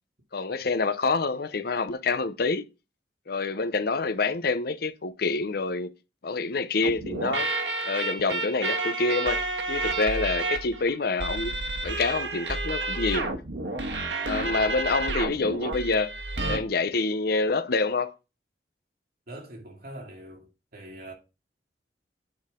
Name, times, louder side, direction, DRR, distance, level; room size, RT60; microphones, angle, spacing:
voice 1, 0.3-2.7 3.3-5.9 6.2-7.5 7.8-9.4 9.7-11.6 11.8-13.3 14.2-16.1 16.5-18.1, left 3 dB, 60° left, 0.7 m, -27 dB
sound 1, 6.8-16.6, right 2 dB, 90° right, 1.5 m, -30 dB
voice 2, 19.3-21.1, right 1 dB, 55° right, 2.3 m, -43 dB
8.9 x 5.6 x 3.6 m
head